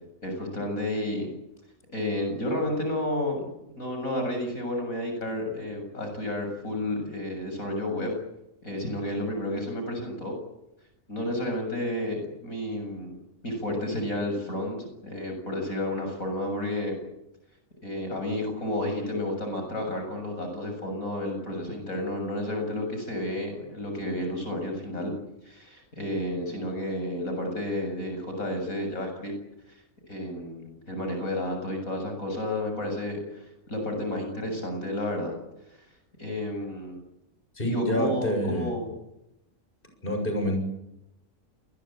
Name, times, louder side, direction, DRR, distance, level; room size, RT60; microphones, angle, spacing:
voice 1, 0.2-1.3 1.9-8.1 8.6-10.4 11.1-17.0 17.8-25.1 25.4-29.3 29.7-29.8 30.1-35.3 36.2-37.0 37.7-38.9, left 1 dB, 75° left, 4 dB, 7.8 m, -31 dB
voice 2, 37.6-38.7 40.0-40.6, left 1 dB, 40° left, 4 dB, 7.6 m, -27 dB
28.0 x 21.0 x 8.9 m, 0.85 s
omnidirectional pair, 1.5 m